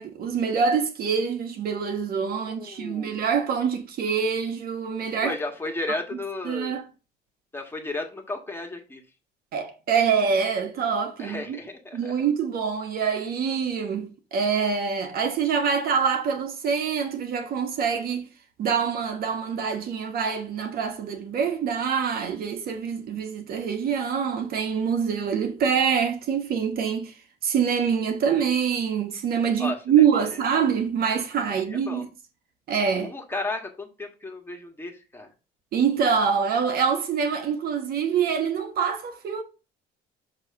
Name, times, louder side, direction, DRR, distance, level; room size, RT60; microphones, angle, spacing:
voice 1, 0.0-5.4 6.4-6.9 9.5-11.6 11.9-18.3 18.6-27.1 27.4-32.1 32.7-33.1 35.7-39.4, right 6 dB, 65° right, 1.3 m, -25 dB
voice 2, 2.4-3.2 5.2-6.8 7.5-9.0 11.2-12.2 29.6-29.8 31.5-32.0 33.0-35.3, left 2 dB, 15° left, 1.6 m, -34 dB
6.9 x 3.0 x 5.7 m
cardioid pair, 110°, 17 cm